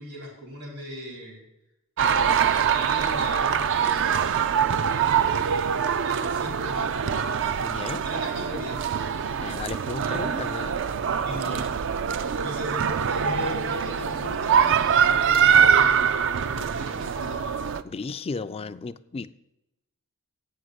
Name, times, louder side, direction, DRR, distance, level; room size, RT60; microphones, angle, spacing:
voice 1, 0.0-1.4 2.0-4.5 4.8-7.2 7.9-9.0 10.0-10.5 11.2-11.7 12.4-17.4, equal, 85° right, -2 dB, 4.3 m, -38 dB
sound 1, 2.0-17.8, right 7 dB, 55° right, 0.4 m, -24 dB
voice 2, 7.6-8.1 9.4-10.8 11.3-11.6 17.8-19.3, left 4 dB, 25° left, 12 dB, 0.3 m, -34 dB
8.6 x 6.4 x 8.0 m, 0.89 s
head